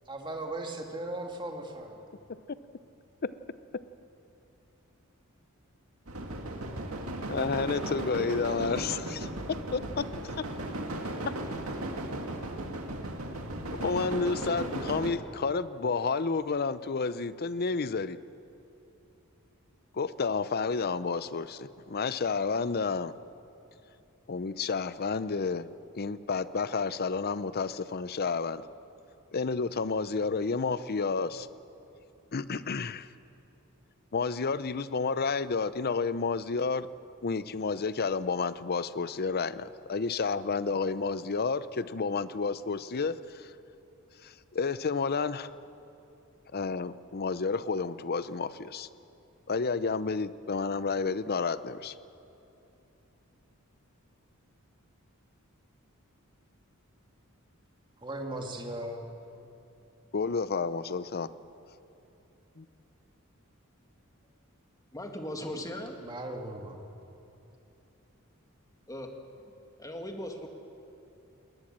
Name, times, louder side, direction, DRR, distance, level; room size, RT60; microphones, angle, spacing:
voice 1, 0.1-2.1 58.0-59.1 66.0-66.8, right 1 dB, 20° right, 2 dB, 2.2 m, -37 dB
sound 1, 6.1-15.1, right 1 dB, 75° right, 2.2 m, -36 dB
voice 2, 7.3-10.0 10.3-10.5 11.3-11.4 13.7-18.2 19.9-23.1 24.3-25.7 26.0-28.7 29.3-31.5 32.3-33.1 34.1-36.9 37.2-43.5 44.2-45.5 46.5-48.9 49.5-51.9 60.1-61.3 62.6-62.7, left 4 dB, 45° left, 15 dB, 0.6 m, -30 dB
voice 3, 64.9-66.0 68.9-69.1 69.4-69.5 69.8-70.5, left 1 dB, 15° left, 3 dB, 2.0 m, -38 dB
20.0 x 19.5 x 7.5 m, 3.0 s
head